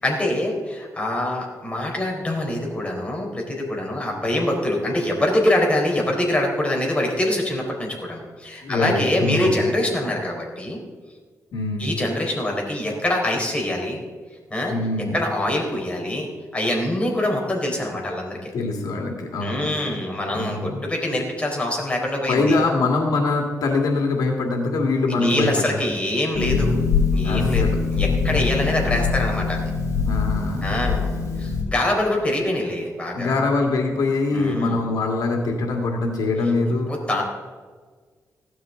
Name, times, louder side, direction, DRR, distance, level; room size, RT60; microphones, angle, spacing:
voice 1, 0.0-10.8 11.8-14.0 14.5-14.7 15.1-16.3 16.5-18.5 19.4-22.6 25.1-26.7 27.1-29.6 30.6-33.4 34.3-34.8 36.9-37.2, left 1 dB, 20° left, -1 dB, 4.0 m, -24 dB
voice 2, 8.6-9.6 11.5-11.9 14.7-15.2 18.5-20.0 20.3-20.8 22.3-25.7 27.2-27.8 28.1-28.6 30.0-30.8 33.1-37.0, left 3 dB, 85° left, 1 dB, 2.1 m, -23 dB
Harp, 26.3-31.6, left 5 dB, 60° left, 4.4 m, -23 dB
16.0 x 12.5 x 3.8 m, 1.5 s
cardioid pair, 95°, 6 cm